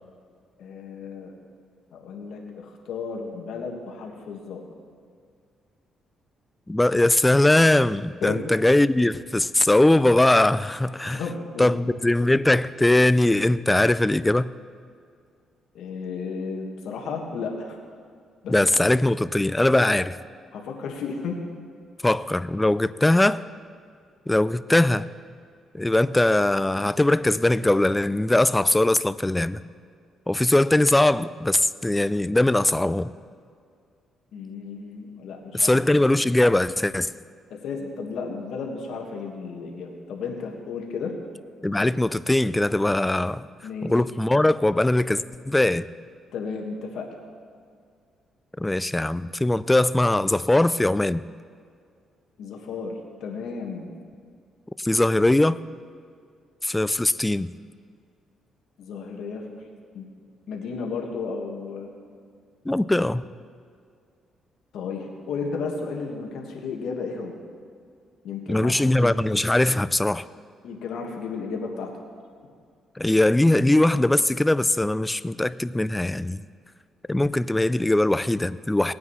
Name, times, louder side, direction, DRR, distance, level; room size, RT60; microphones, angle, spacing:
voice 1, 0.6-1.3 1.9-4.6 8.2-8.4 11.1-11.7 15.7-17.8 18.4-18.9 19.8-19.9 20.5-21.4 34.3-36.0 37.5-41.1 43.6-43.9 46.3-47.1 52.4-53.9 58.8-59.4 59.9-60.0 60.5-61.9 64.7-67.3 68.2-69.1 70.6-71.9, left 5 dB, 75° left, 1 dB, 1.6 m, -33 dB
voice 2, 6.7-11.2 11.6-14.5 18.5-20.1 22.0-23.4 24.3-25.1 25.7-29.6 30.3-33.1 35.5-37.1 41.6-43.5 43.8-45.8 48.6-51.2 54.8-55.6 56.6-57.5 62.7-63.2 68.5-70.2 73.0-76.4 77.1-78.9, left 1 dB, 10° left, 16 dB, 0.3 m, -21 dB
18.5 x 9.4 x 3.2 m, 2.2 s
cardioid pair, 90°, 0 cm